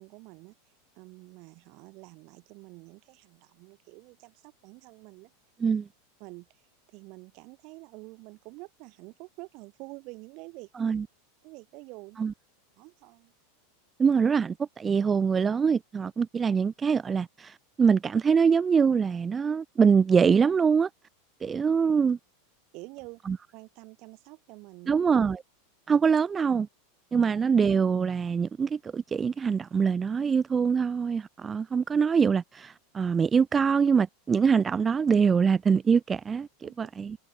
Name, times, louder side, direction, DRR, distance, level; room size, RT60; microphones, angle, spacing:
voice 1, 0.0-5.3 6.2-6.6 6.9-10.7 11.4-12.2 12.8-13.3 21.4-21.5 22.7-23.2 23.5-24.9 36.6-36.9, right 27 dB, 55° right, 2.7 m, -47 dB
voice 2, 14.0-20.9 21.4-22.2 23.3-23.4 24.9-25.4 25.9-26.7 27.1-37.2, right 6 dB, 20° right, 0.5 m, -24 dB
hypercardioid pair, 95°, 0 cm